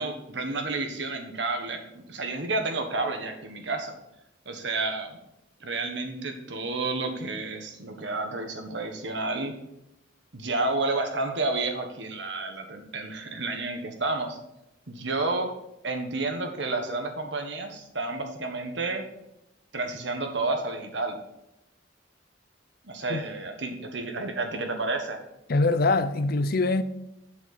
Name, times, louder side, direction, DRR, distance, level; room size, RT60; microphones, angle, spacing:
voice 1, 0.0-3.9 4.4-5.2 5.6-9.5 10.3-14.4 14.9-15.5 15.8-19.0 19.7-21.2 22.8-25.2, right 3 dB, 65° right, 1.4 m, -30 dB
voice 2, 25.5-26.8, left 3 dB, 55° left, 0.6 m, -23 dB
7.8 x 7.3 x 4.3 m
head